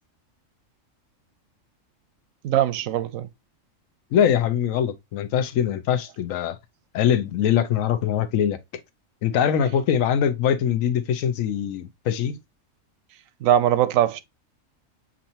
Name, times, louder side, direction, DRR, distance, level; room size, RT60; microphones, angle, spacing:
voice 1, 2.4-3.3 13.4-14.2, right 11 dB, 80° right, 1.0 m, -21 dB
voice 2, 4.1-6.6 6.9-8.6 9.2-12.4, left 9 dB, 85° left, 1.0 m, -22 dB
7.1 x 2.6 x 2.7 m
omnidirectional pair, 1.4 m